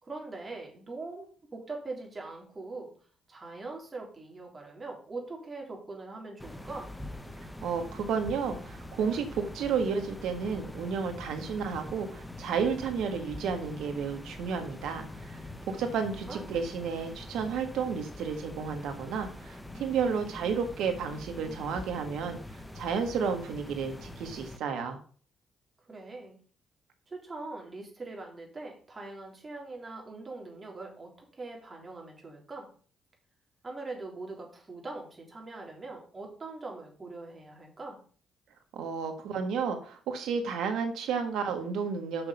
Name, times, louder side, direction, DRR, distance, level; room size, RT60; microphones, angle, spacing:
voice 1, 0.0-2.9 3.3-6.9 16.1-16.5 25.8-26.4 27.1-32.7 33.6-38.0, right 3 dB, 35° right, 0 dB, 3.5 m, -42 dB
sound 1, 6.4-24.6, left 1 dB, 10° left, 1.1 m, -44 dB
voice 2, 7.6-15.4 15.7-22.4 22.7-25.0 38.7-42.3, right 6 dB, 75° right, 6 dB, 1.6 m, -32 dB
6.4 x 6.0 x 5.5 m, 0.43 s
hypercardioid pair, 50°, 0 cm